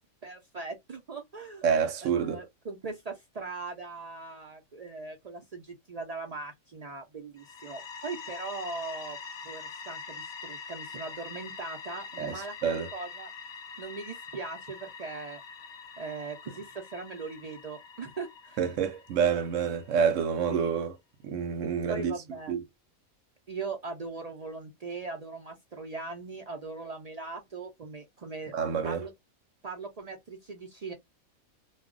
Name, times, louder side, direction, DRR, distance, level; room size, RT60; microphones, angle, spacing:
voice 1, 0.2-1.6 2.0-9.2 9.4-13.3 13.8-15.4 16.0-18.7 20.5-20.7 21.9-22.5 23.5-28.5 28.8-29.1 29.6-30.9, right 4 dB, 90° right, 0.3 m, -40 dB
voice 2, 1.6-2.4 12.2-12.9 18.6-20.9 21.2-22.1 22.5-22.6 28.5-29.0, right 7 dB, 70° right, 0.9 m, -28 dB
sound 1, 7.4-20.1, left 5 dB, 75° left, 0.4 m, -44 dB
2.3 x 2.1 x 3.6 m
omnidirectional pair, 1.5 m